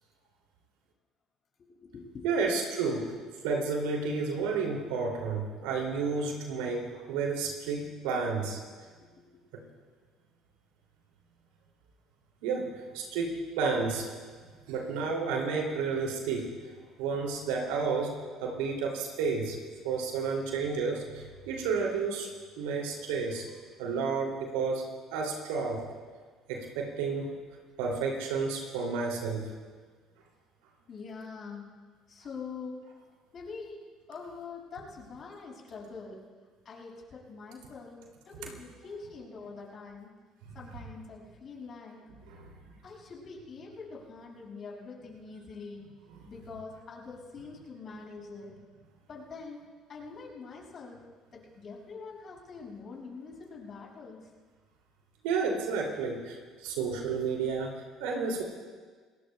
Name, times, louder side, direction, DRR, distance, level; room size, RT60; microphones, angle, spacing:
voice 1, 1.6-2.5 9.0-9.4 30.9-31.7 32.1-32.8 33.3-36.2 36.6-40.1 40.5-42.0 42.8-45.9 46.3-48.6 49.1-51.0 51.3-54.3, left 4 dB, 50° left, -4 dB, 6.1 m, -44 dB
voice 2, 2.2-3.1 3.4-8.6 9.5-9.6 12.4-12.7 12.9-14.1 14.7-16.5 17.0-19.6 19.8-22.3 22.6-23.4 23.8-24.8 25.1-25.8 26.5-27.3 27.8-29.5 40.4-40.5 42.3-42.5 46.2-46.3 55.2-58.4, right 4 dB, 75° right, 0 dB, 2.6 m, -31 dB
27.5 x 19.5 x 2.2 m, 1.5 s
hypercardioid pair, 60°, 0 cm